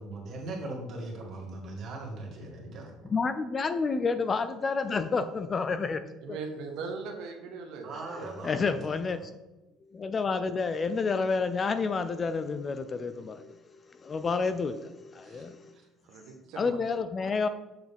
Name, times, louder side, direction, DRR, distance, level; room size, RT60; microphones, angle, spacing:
voice 1, 0.0-3.1 7.8-8.7 15.2-15.4 15.7-15.8, right 2 dB, 40° right, -2 dB, 2.2 m, -39 dB
voice 2, 3.0-6.0 6.3-6.4 8.4-9.3 9.9-13.6 13.9-15.7 16.6-17.5, left 4 dB, 25° left, 11 dB, 0.4 m, -29 dB
voice 3, 6.2-8.0 16.0-16.8, right 4 dB, 65° right, 3 dB, 1.0 m, -39 dB
7.4 x 6.0 x 3.5 m, 1.0 s
cardioid pair, 150°, 0 cm